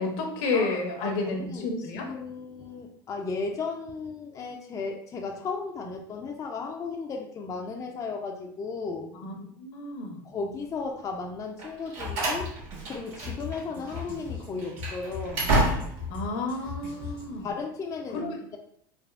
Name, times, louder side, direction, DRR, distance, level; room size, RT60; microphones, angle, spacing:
voice 1, 0.0-2.1 9.2-9.3 9.6-10.2 13.7-13.8 16.1-17.5 18.1-18.4, left 3 dB, 70° left, 2 dB, 0.8 m, -31 dB
voice 2, 0.5-9.1 10.2-12.6 12.8-15.5 17.4-18.6, left 4 dB, 30° left, 2 dB, 0.4 m, -35 dB
Slam, 11.6-13.6 13.9-14.1 14.6-16.2, right 1 dB, 60° right, 1.4 m, -29 dB
Drum kit, 12.0-17.5, left 5 dB, 40° right, 1.3 m, -40 dB
3.4 x 2.5 x 2.4 m, 0.66 s
supercardioid pair, 100°, 12 cm